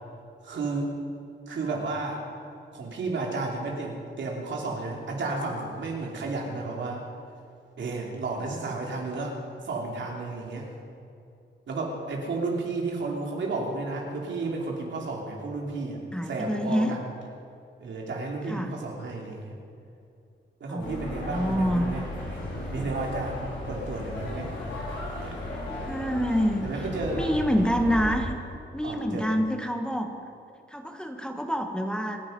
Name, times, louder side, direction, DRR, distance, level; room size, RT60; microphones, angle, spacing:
voice 1, 0.4-1.0 1.5-2.2 2.7-7.0 7.8-9.4 9.6-10.7 11.7-17.0 17.8-19.6 20.6-22.0 22.3-22.4 22.7-24.5 25.2-25.4 26.6-27.2 28.8-29.3, right 3 dB, 75° right, 0 dB, 3.2 m, -32 dB
voice 2, 16.1-16.9 18.5-18.7 20.7-21.9 25.8-26.8 27.1-28.4 28.7-30.1 30.7-32.2, equal, 5° left, 4 dB, 1.4 m, -27 dB
sound 1, 20.8-28.2, left 1 dB, 90° left, 5.0 m, -35 dB
26.0 x 9.8 x 5.4 m, 2.5 s
cardioid pair, 90°, 19 cm